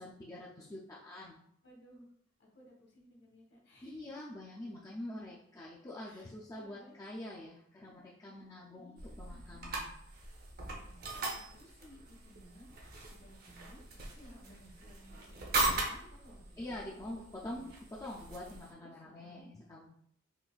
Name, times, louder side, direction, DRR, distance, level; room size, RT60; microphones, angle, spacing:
voice 1, 0.0-1.4 3.8-10.0 16.6-19.9, left 1 dB, 15° left, -5 dB, 0.3 m, -45 dB
voice 2, 1.6-2.1 2.4-4.1 6.0-7.0 8.7-9.7 10.8-15.5 15.7-16.6 17.0-17.7 18.8-19.4, equal, 55° left, -1 dB, 1.0 m, -59 dB
sound 1, 9.0-18.7, right 2 dB, 50° right, 0.6 m, -39 dB
3.8 x 2.5 x 2.3 m, 0.69 s
head